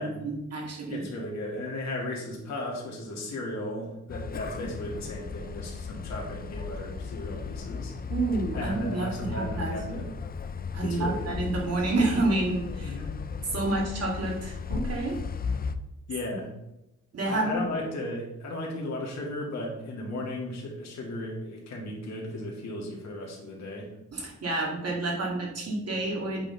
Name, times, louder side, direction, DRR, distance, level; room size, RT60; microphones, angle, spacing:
voice 1, 0.0-1.1 8.1-9.7 10.7-13.0 13.5-15.2 16.3-16.4 17.1-17.7 24.1-26.4, right 2 dB, 55° right, -1 dB, 2.4 m, -29 dB
voice 2, 0.9-7.9 8.5-10.1 10.8-11.4 12.8-13.1 16.1-16.5 17.3-23.9, left 1 dB, 60° left, -2 dB, 2.1 m, -35 dB
sound 1, 4.1-15.8, left 5 dB, 30° left, 0.5 m, -36 dB
7.8 x 5.2 x 3.9 m, 0.92 s
cardioid pair, 90°, 30 cm